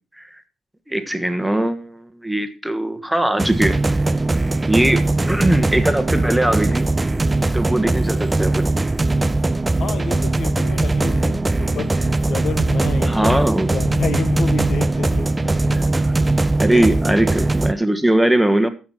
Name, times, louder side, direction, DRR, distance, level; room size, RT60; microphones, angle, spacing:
voice 1, 0.9-3.8 4.7-6.9 7.5-8.7 13.0-13.7 15.7-15.8 16.6-18.7, right 1 dB, 5° right, 1.4 m, -20 dB
sound 1, 3.4-17.7, right 2 dB, 20° right, 0.5 m, -20 dB
voice 2, 7.8-8.2 9.8-15.9 16.7-17.0, left 6 dB, 60° left, 1.3 m, -30 dB
14.5 x 6.1 x 4.4 m
hypercardioid pair, 50°, 0 cm